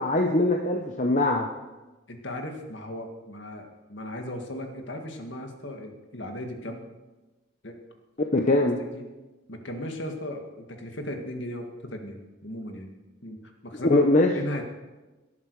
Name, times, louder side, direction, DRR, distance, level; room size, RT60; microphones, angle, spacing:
voice 1, 0.0-1.5 8.3-8.8 13.9-14.3, left 2 dB, 35° left, 3 dB, 0.9 m, -22 dB
voice 2, 2.1-6.9 7.6-7.8 8.8-9.1 9.5-12.9 13.2-14.1 14.3-14.6, left 1 dB, 60° left, 4 dB, 1.9 m, -36 dB
18.0 x 11.0 x 4.8 m, 1.1 s
head